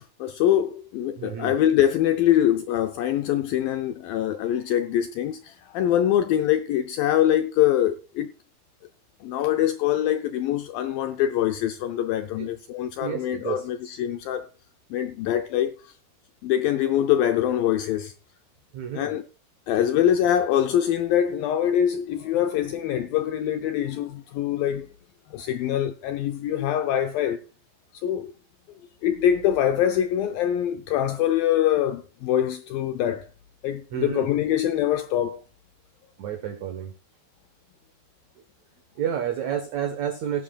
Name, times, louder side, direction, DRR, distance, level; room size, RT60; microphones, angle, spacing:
voice 1, 0.0-8.3 9.2-14.5 14.9-15.9 16.4-18.1 18.9-19.3 19.7-24.9 25.3-27.4 27.9-28.3 29.0-33.3 33.6-35.4, left 11 dB, 85° left, 2.0 m, -24 dB
voice 2, 1.2-1.6 12.4-12.5 13.0-13.7 18.7-19.1 33.9-34.3 36.2-36.9 39.0-40.4, right 9 dB, 80° right, 1.6 m, -30 dB
17.5 x 10.0 x 2.3 m
omnidirectional pair, 4.8 m